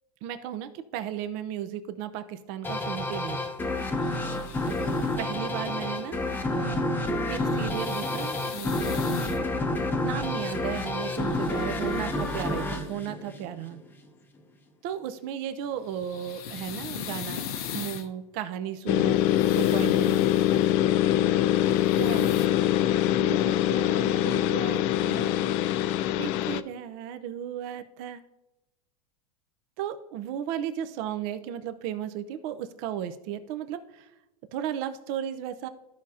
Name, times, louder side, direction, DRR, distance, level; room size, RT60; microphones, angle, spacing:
voice 1, 0.2-3.5 4.7-6.2 6.5-9.0 10.0-13.8 14.8-17.4 17.7-19.2 19.5-20.2 21.9-22.3 22.9-25.6 26.2-28.2 29.8-34.1 34.5-35.7, right 10 dB, 50° right, 11 dB, 0.7 m, -35 dB
sound 1, 2.6-13.9, left 2 dB, 10° left, 0.7 m, -29 dB
sound 2, 3.9-5.3 7.3-9.4 10.6-13.0 15.7-18.1 18.8-20.7 21.4-22.5, left 8 dB, 70° left, 0.9 m, -41 dB
sound 3, 18.9-26.6, left 12 dB, 45° left, 0.4 m, -23 dB
13.5 x 4.9 x 2.8 m, 0.95 s
supercardioid pair, 125°, 20 cm